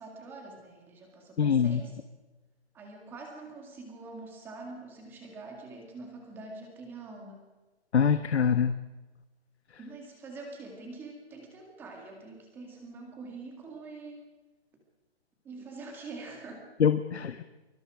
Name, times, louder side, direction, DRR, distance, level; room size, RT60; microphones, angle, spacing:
voice 1, 0.0-2.0 2.7-7.4 9.8-14.3 15.4-16.7, right 3 dB, 5° right, 2 dB, 2.1 m, -45 dB
voice 2, 1.4-1.8 7.9-8.8 16.8-17.4, left 7 dB, 75° left, 11 dB, 1.3 m, -24 dB
24.5 x 23.5 x 4.9 m, 1.2 s
hypercardioid pair, 180°, 33 cm